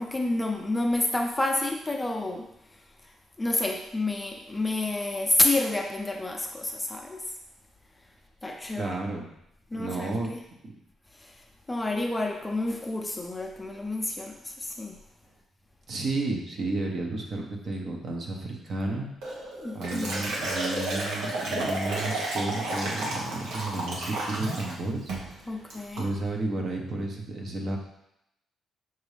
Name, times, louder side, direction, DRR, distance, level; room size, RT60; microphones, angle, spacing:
voice 1, 0.0-2.5 3.0-7.2 8.4-9.0 9.7-10.4 11.1-11.4 11.7-15.0 19.6-20.1 25.5-26.1, left 2 dB, 15° left, 2 dB, 0.6 m, -29 dB
voice 2, 8.8-9.3 9.8-10.3 10.6-10.7 15.9-19.5 19.7-25.7 26.0-27.8, right 2 dB, 50° right, 1 dB, 0.9 m, -32 dB
Liquid, 19.2-24.8 25.1-25.3 25.7-26.1, right 2 dB, 85° right, 1.1 m, -32 dB
5.9 x 2.7 x 3.3 m, 0.79 s
cardioid pair, 90°, 0 cm